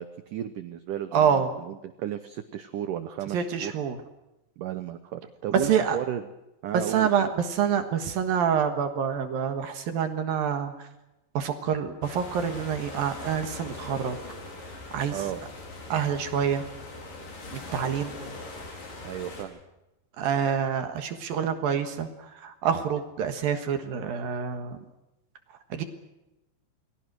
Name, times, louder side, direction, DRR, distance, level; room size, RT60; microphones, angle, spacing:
voice 1, 0.0-3.7 4.6-6.2 6.6-7.3 15.1-15.4 19.0-19.6, right 11 dB, 90° right, 10 dB, 1.8 m, -34 dB
voice 2, 1.1-1.5 3.3-4.0 5.5-6.0 6.7-10.9 11.3-14.2 14.9-15.2 15.9-16.6 17.5-18.1 20.2-24.8 25.7-25.8, right 7 dB, 65° right, 7 dB, 2.9 m, -27 dB
sound 1, 12.0-19.4, left 2 dB, 50° left, 6.0 m, -41 dB
29.0 x 21.0 x 6.2 m, 0.96 s
omnidirectional pair, 5.1 m